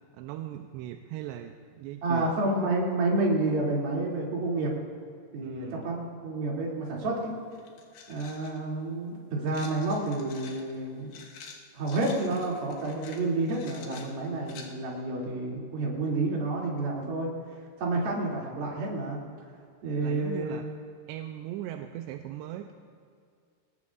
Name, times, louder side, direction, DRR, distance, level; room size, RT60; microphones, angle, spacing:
voice 1, 0.1-2.3 5.4-5.9 20.0-20.7 21.1-22.7, right 12 dB, 85° right, 5 dB, 2.7 m, -39 dB
voice 2, 2.0-4.7 5.3-7.3 8.1-11.1 11.7-17.3 17.8-19.2 19.8-20.6, right 2 dB, 60° right, -3 dB, 4.4 m, -29 dB
sound 1, 7.0-7.1 7.5-8.6 9.5-14.7, left 5 dB, 65° left, 3.0 m, -48 dB
24.0 x 19.5 x 2.5 m, 2.2 s
omnidirectional pair, 5.1 m